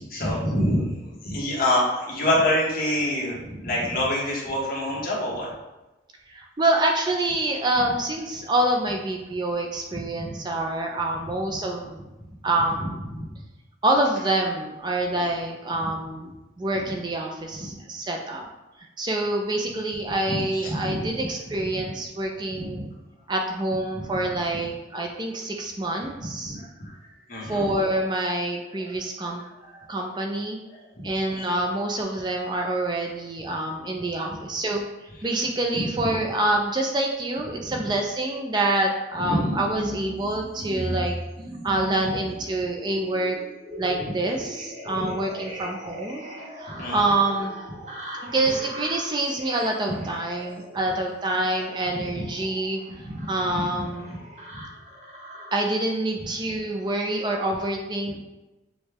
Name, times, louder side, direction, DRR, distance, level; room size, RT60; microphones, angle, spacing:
voice 1, 0.1-5.5 9.9-10.3 12.8-13.3 15.8-15.9 17.6-17.7 20.3-21.3 22.5-22.8 24.0-24.1 24.5-24.6 26.4-26.9 27.3-27.6 29.6-29.9 30.7-31.1 31.3-31.4 35.7-35.9 39.2-39.4 45.0-45.1 46.7-47.0 51.9-52.2 53.0-53.2, left 1 dB, 55° left, -5 dB, 1.4 m, -27 dB
voice 2, 6.3-12.0 12.4-12.8 13.8-16.3 16.6-18.4 19.0-22.9 23.3-26.6 27.4-29.4 29.9-30.6 31.0-34.8 35.2-41.2 41.6-43.4 43.8-46.2 46.5-47.6 48.3-52.8 53.3-54.2 55.5-58.1, right 2 dB, 25° right, 1 dB, 0.4 m, -26 dB
sound 1, 39.7-55.6 56.3-57.0 57.4-57.6, equal, 40° right, 0.8 m, -39 dB
6.3 x 2.3 x 3.4 m, 1.0 s
head